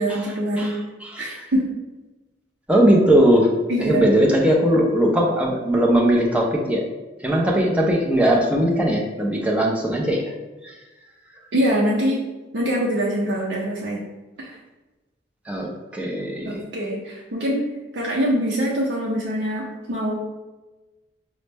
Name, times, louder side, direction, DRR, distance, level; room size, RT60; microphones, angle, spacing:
voice 1, 0.0-0.8 1.2-1.7 3.7-4.1 11.5-12.2 12.5-14.0 14.4-14.6 16.4-17.6 17.9-20.1, equal, 70° right, -4 dB, 0.6 m, -24 dB
voice 2, 0.6-1.4 2.7-3.5 3.8-6.8 7.2-10.3 10.6-10.7 15.5-16.6, right 1 dB, 5° right, -1 dB, 0.5 m, -19 dB
5.3 x 2.1 x 3.3 m, 1.1 s
head